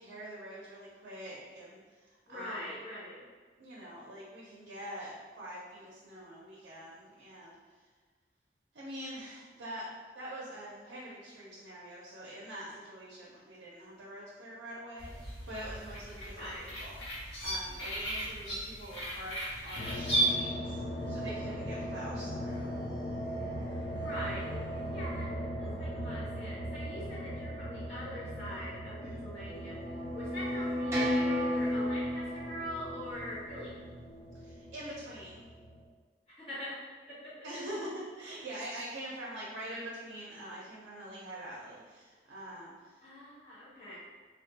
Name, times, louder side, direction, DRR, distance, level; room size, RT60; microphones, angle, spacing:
voice 1, 0.0-2.8 3.6-7.6 8.7-16.4 16.8-19.4 19.6-22.8 29.0-29.2 34.4-35.5 37.4-43.0, right 1 dB, 85° right, -5 dB, 0.5 m, -45 dB
voice 2, 2.3-3.1 16.3-16.6 24.0-24.4 24.9-25.3 25.6-29.7 30.1-33.7 36.3-36.8 37.1-37.3 43.0-44.0, equal, 30° left, -13 dB, 1.0 m, -43 dB
sound 1, 15.0-20.3, right 1 dB, 85° left, 0.9 m, -36 dB
sound 2, 19.7-35.8, equal, 70° left, 0.5 m, -39 dB
sound 3, 29.5-34.6, left 1 dB, 15° right, 0.4 m, -34 dB
2.3 x 2.1 x 2.7 m, 1.5 s
head